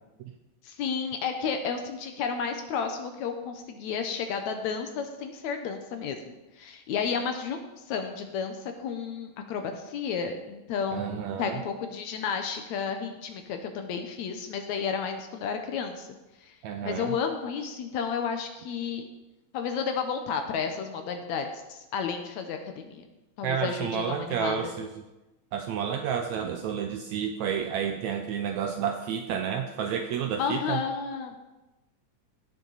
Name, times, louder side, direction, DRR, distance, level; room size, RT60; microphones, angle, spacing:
voice 1, 0.6-7.6 7.9-16.1 16.4-16.5 16.8-19.1 19.5-23.1 23.4-24.8 30.4-31.4, left 6 dB, 70° left, 6 dB, 2.0 m, -32 dB
voice 2, 10.9-11.6 16.6-17.1 23.4-24.9 25.5-30.8, right 7 dB, 80° right, 6 dB, 1.7 m, -30 dB
16.5 x 7.1 x 4.0 m, 1.0 s
omnidirectional pair, 3.8 m